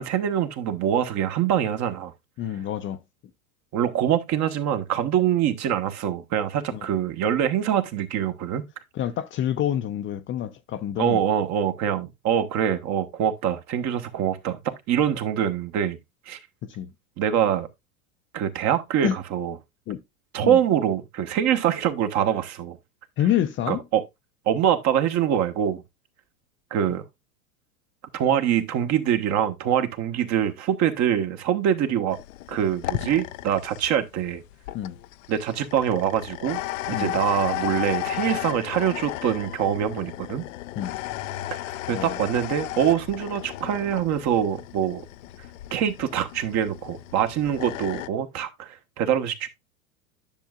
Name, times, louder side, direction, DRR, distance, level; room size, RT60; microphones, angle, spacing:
voice 1, 0.0-2.1 3.7-8.7 11.0-16.0 16.3-16.4 17.2-17.7 18.3-19.5 20.3-22.8 23.7-24.0 24.5-25.8 26.7-27.0 28.1-32.2 32.5-34.4 35.3-36.6 36.9-40.5 41.5-41.6 41.9-45.1 45.7-49.5, right 9 dB, 40° right, 1.3 m, -24 dB
voice 2, 2.4-3.0 6.7-6.9 8.9-11.2 16.6-16.9 19.0-19.2 19.9-20.0 20.4-20.6 23.2-23.8 34.7-35.0 36.9-37.1 40.8-41.0 41.9-42.2, left 11 dB, 30° left, 0.6 m, -27 dB
sound 1, 32.1-48.1, left 15 dB, 65° left, 0.6 m, -34 dB
10.5 x 6.3 x 2.4 m
hypercardioid pair, 105°, 42 cm